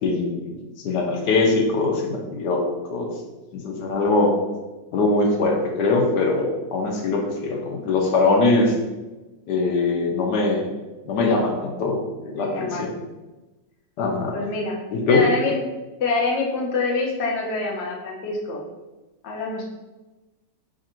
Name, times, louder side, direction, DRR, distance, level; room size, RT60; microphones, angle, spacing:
voice 1, 0.0-0.6 0.8-2.6 2.9-3.1 3.5-4.3 4.9-8.7 9.5-10.6 11.1-12.0 12.3-12.9 14.0-14.4 14.9-15.3, left 3 dB, 75° left, 1 dB, 1.2 m, -22 dB
voice 2, 12.2-12.9 14.3-14.8 15.1-15.6 16.0-18.6 19.2-19.6, left 3 dB, 55° left, -2 dB, 0.8 m, -25 dB
3.4 x 2.5 x 4.2 m, 1.1 s
omnidirectional pair, 1.9 m